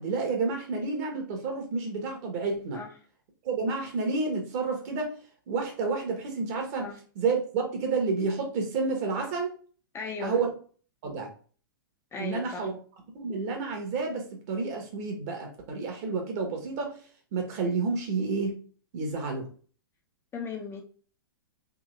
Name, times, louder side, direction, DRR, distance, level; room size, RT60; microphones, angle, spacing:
voice 1, 0.0-2.8 3.4-5.1 5.5-9.5 10.2-10.5 11.0-11.3 12.2-12.8 13.1-17.0 17.3-18.6 18.9-19.5, right 4 dB, 50° right, 2 dB, 1.4 m, -30 dB
voice 2, 9.9-10.4 12.1-12.7 20.3-20.8, left 4 dB, 20° left, 3 dB, 0.7 m, -36 dB
3.7 x 3.1 x 3.2 m, 0.42 s
hypercardioid pair, 110°, 12 cm